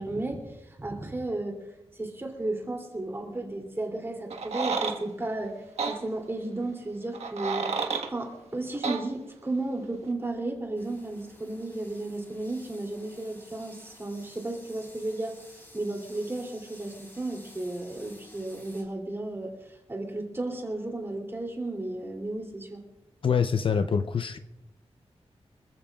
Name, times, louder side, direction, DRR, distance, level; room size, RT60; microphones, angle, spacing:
voice 1, 0.0-1.6 1.9-5.6 5.8-7.7 8.1-15.4 15.7-22.8, right 2 dB, 20° right, 2.9 m, -34 dB
sound 1, 4.3-5.0 5.8-6.0 7.1-8.1 8.8-9.0, right 5 dB, 85° right, 1.4 m, -30 dB
sound 2, 10.7-18.8, left 1 dB, 20° left, 4.3 m, -53 dB
voice 2, 23.2-24.4, left 6 dB, 55° left, 0.5 m, -25 dB
26.0 x 14.5 x 2.4 m
wide cardioid pair, 175°, 11 cm